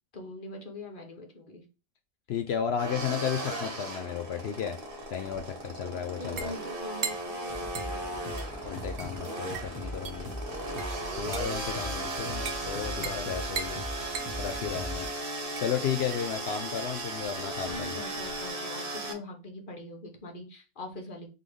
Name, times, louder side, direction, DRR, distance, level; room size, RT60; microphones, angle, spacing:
voice 1, 0.1-1.6 5.8-8.4 17.7-21.3, left 2 dB, 45° left, 2 dB, 1.2 m, -43 dB
voice 2, 2.3-4.8 5.1-6.5 8.6-10.3 11.2-13.9 14.4-15.1 15.6-18.0, left 8 dB, 65° left, 5 dB, 0.8 m, -33 dB
sound 1, 2.8-19.1, right 2 dB, 50° right, 1.2 m, -36 dB
sound 2, 4.5-18.5, right 6 dB, 90° right, 1.1 m, -42 dB
sound 3, 7.5-15.1, equal, 15° left, 1.4 m, -40 dB
3.8 x 3.7 x 3.2 m, 0.31 s
omnidirectional pair, 1.2 m